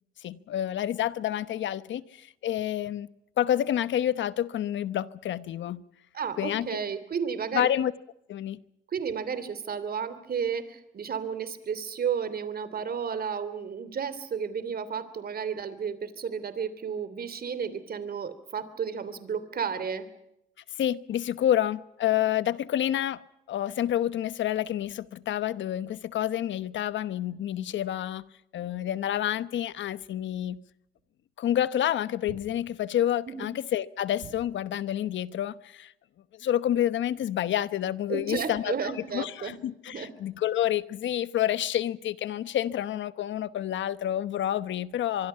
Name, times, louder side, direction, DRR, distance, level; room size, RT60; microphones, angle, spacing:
voice 1, 0.2-3.1 3.4-5.8 6.4-6.7 7.5-7.9 8.3-8.6 20.8-23.2 23.5-28.2 28.5-30.6 31.4-35.9 36.3-45.3, left 11 dB, 70° left, 15 dB, 1.0 m, -28 dB
voice 2, 6.1-7.7 8.9-20.1 33.3-33.4 38.1-39.6 39.9-40.1, right 7 dB, 50° right, 13 dB, 3.0 m, -32 dB
sound 1, 31.0-31.1 32.3-33.1 34.2-35.0, right 8 dB, 90° right, 4.2 m, -49 dB
24.5 x 24.0 x 5.7 m, 0.84 s
cardioid pair, 90°, 20 cm